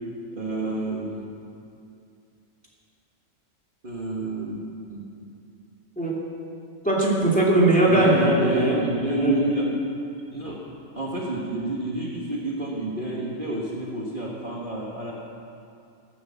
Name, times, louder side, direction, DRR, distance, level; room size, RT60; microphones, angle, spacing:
voice 1, 0.3-1.3 3.8-4.6 4.9-5.2 7.9-9.8 10.3-15.1, right 2 dB, 40° right, -3 dB, 1.6 m, -29 dB
voice 2, 6.8-9.6, right 1 dB, 5° left, -5 dB, 2.8 m, -21 dB
14.5 x 11.0 x 7.4 m, 2.5 s
omnidirectional pair, 1.4 m